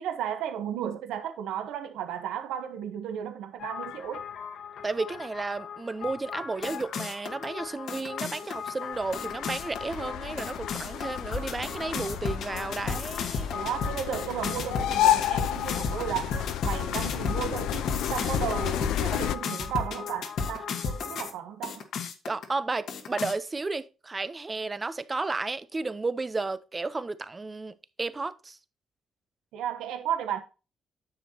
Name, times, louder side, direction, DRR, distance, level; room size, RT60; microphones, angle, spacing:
voice 1, 0.0-4.2 13.5-21.9 29.5-30.4, right 9 dB, 90° right, 1.1 m, -34 dB
sound 1, 3.6-21.3 21.6-22.4 22.9-23.3, left 6 dB, 70° left, 1.5 m, -35 dB
voice 2, 4.8-13.6 22.3-28.6, right 3 dB, 25° right, 0.7 m, -33 dB
sound 2, 8.9-19.3, left 12 dB, 85° left, 0.6 m, -31 dB
9.8 x 7.0 x 2.9 m
cardioid pair, 90°, 0 cm